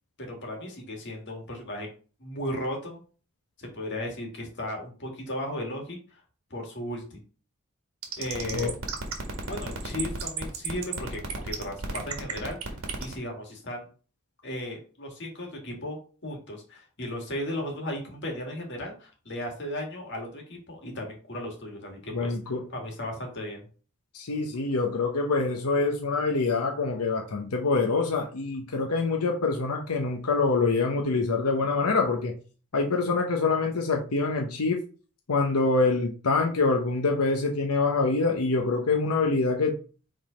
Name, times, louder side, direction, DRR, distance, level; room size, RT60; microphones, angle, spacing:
voice 1, 0.2-1.9 2.2-3.0 3.6-6.2 6.5-7.2 8.2-8.7 9.4-12.7 13.0-13.9 14.4-22.4 22.7-23.7, left 1 dB, 50° left, 1 dB, 1.9 m, -35 dB
sound 1, 8.0-13.1, right 5 dB, 65° right, 1.6 m, -33 dB
voice 2, 22.1-22.6 24.1-32.3 32.7-34.8 35.3-39.7, left 3 dB, 90° left, 2 dB, 0.9 m, -25 dB
5.2 x 3.8 x 5.0 m, 0.38 s
head